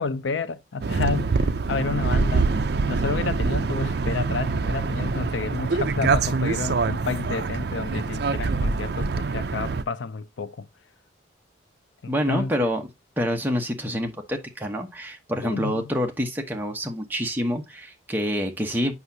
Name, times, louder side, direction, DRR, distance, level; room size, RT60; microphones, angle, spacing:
voice 1, 0.0-2.5 2.9-10.7 12.0-12.7 15.4-15.8, left 4 dB, 75° left, 0.5 m, -30 dB
sound 1, 0.8-9.8, right 4 dB, 55° right, 0.5 m, -25 dB
voice 2, 12.1-12.8 13.2-18.9, equal, 10° right, 1.0 m, -27 dB
7.9 x 5.7 x 2.7 m
head